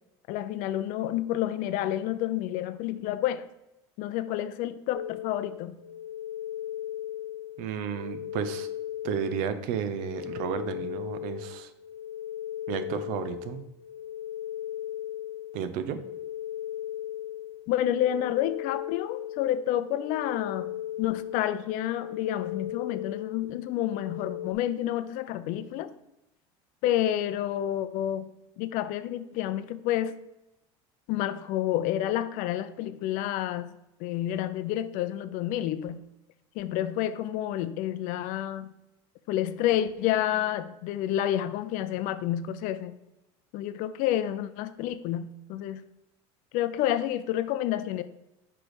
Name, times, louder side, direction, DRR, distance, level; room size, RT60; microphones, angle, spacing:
voice 1, 0.3-3.5 4.0-5.8 17.7-25.9 26.8-28.3 28.6-30.1 31.1-33.7 34.0-36.0 36.5-38.7 39.3-42.9 43.5-45.8 46.5-48.0, left 12 dB, 65° left, 12 dB, 0.5 m, -29 dB
sound 1, 4.9-24.5, left 11 dB, 80° left, 0.9 m, -37 dB
voice 2, 7.6-8.7 9.0-11.7 12.7-13.6 15.5-16.0, right 8 dB, 65° right, 11 dB, 0.6 m, -32 dB
6.1 x 3.3 x 4.8 m, 0.90 s
supercardioid pair, 110°, 15 cm